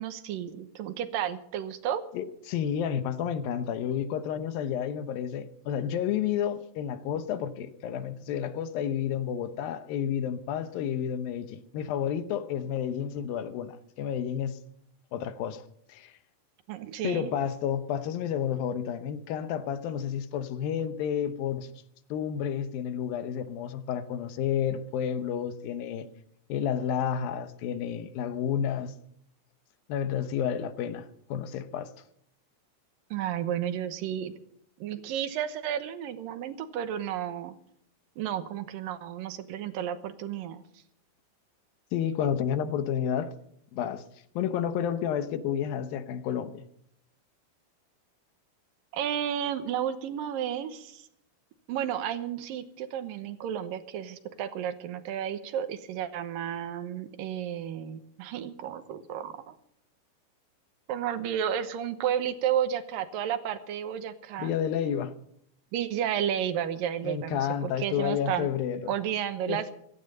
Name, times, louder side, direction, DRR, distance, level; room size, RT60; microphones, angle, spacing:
voice 1, 0.0-2.0 16.7-17.3 33.1-34.3 34.8-37.5 38.2-40.6 48.9-51.0 51.7-59.6 60.9-64.5 65.7-68.5 68.9-69.7, right 10 dB, 75° right, 2.7 m, -32 dB
voice 2, 2.1-14.6 15.1-15.6 15.9-16.1 17.0-21.7 22.1-26.1 26.5-28.9 29.9-31.9 41.9-43.3 43.7-44.0 44.4-46.6 64.4-65.1 67.0-68.9 69.5-69.6, left 9 dB, 80° left, 2.8 m, -30 dB
16.5 x 14.5 x 5.5 m
omnidirectional pair, 4.1 m